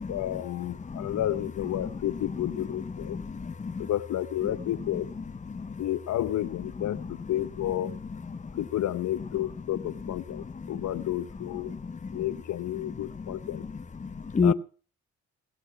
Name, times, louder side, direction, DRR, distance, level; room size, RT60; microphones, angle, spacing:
voice 1, 0.1-3.2 3.8-5.1 5.8-8.0 8.5-11.8 12.1-13.7 14.4-14.5, left 12 dB, 65° left, 13 dB, 0.9 m, -31 dB
voice 2, 0.9-1.2 3.1-3.9 5.5-5.8 11.7-12.2 14.0-14.5, left 5 dB, 25° left, 11 dB, 0.9 m, -29 dB
18.5 x 6.9 x 7.1 m, 0.39 s
cardioid pair, 90°, 30 cm